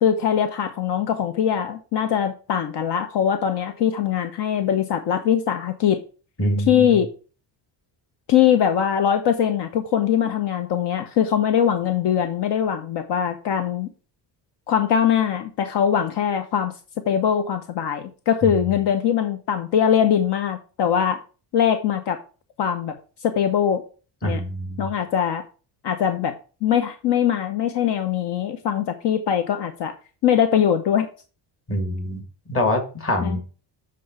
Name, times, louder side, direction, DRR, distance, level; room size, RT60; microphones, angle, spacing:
voice 1, 0.0-6.0 6.7-7.1 8.3-13.9 14.7-16.7 17.1-21.2 21.5-22.2 22.6-22.9 23.2-23.8 24.2-24.4 24.8-25.4 25.8-26.3 26.6-29.9 30.2-31.1 33.2-33.4, left 9 dB, 70° left, 8 dB, 1.0 m, -21 dB
voice 2, 6.4-7.0 24.2-24.9 31.7-32.2 32.5-33.4, left 1 dB, 30° left, 4 dB, 2.2 m, -24 dB
7.7 x 3.9 x 6.7 m, 0.36 s
cardioid pair, 150°, 42 cm